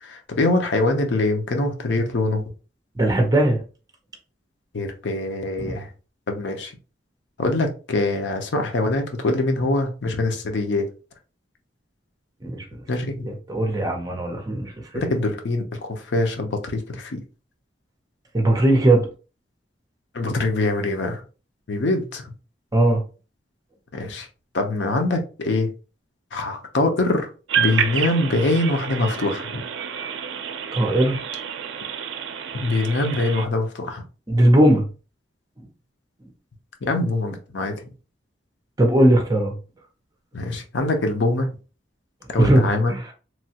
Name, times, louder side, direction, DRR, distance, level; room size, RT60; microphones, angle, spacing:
voice 1, 0.0-2.4 4.7-5.9 6.3-6.7 7.4-10.9 12.9-13.3 14.9-17.2 20.1-21.2 21.7-22.2 23.9-24.3 24.5-25.7 26.3-27.3 27.6-29.5 32.6-34.0 36.8-37.7 40.3-41.5 42.3-42.9, left 2 dB, 75° left, 5 dB, 0.6 m, -23 dB
voice 2, 3.0-3.6 5.6-5.7 12.4-12.8 13.2-15.1 18.3-19.1 22.7-23.0 30.7-31.2 34.3-34.9 38.8-39.5 42.4-43.1, right 1 dB, 20° right, 2 dB, 0.6 m, -19 dB
sound 1, 27.5-33.5, right 7 dB, 80° right, 0.4 m, -29 dB
3.0 x 2.2 x 2.8 m, 0.34 s
head